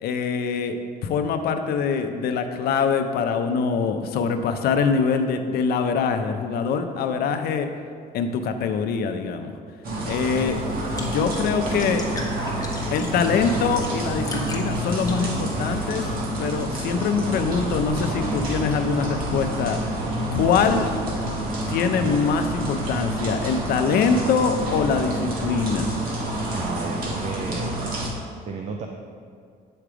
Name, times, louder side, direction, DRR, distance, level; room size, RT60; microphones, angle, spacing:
voice 1, 0.0-7.7 8.1-9.6 10.1-10.6 11.0-12.1 12.9-16.1 16.4-19.8 20.3-20.9 21.7-25.9, left 5 dB, 70° left, 7 dB, 0.6 m, -24 dB
sound 1, 9.8-28.1, right 1 dB, 60° right, 1.4 m, -28 dB
sound 2, 10.4-16.2, left 2 dB, 20° left, 1.0 m, -40 dB
voice 2, 26.5-27.8 28.5-28.9, right 4 dB, 45° right, 3 dB, 0.5 m, -33 dB
8.6 x 3.3 x 4.9 m, 2.2 s
cardioid pair, 110°, 17 cm